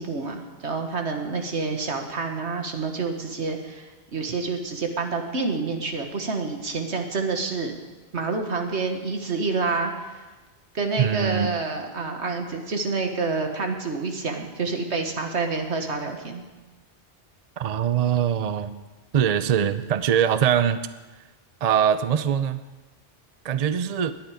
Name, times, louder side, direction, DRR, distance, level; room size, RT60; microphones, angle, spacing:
voice 1, 0.0-7.7 8.1-10.2 10.7-16.4, right 4 dB, 80° right, 4 dB, 1.8 m, -28 dB
voice 2, 11.0-11.5 17.6-18.7 19.1-20.9 21.6-22.6 23.4-24.1, right 8 dB, 45° right, 12 dB, 0.6 m, -22 dB
18.5 x 10.5 x 5.1 m, 1.2 s
omnidirectional pair, 1.1 m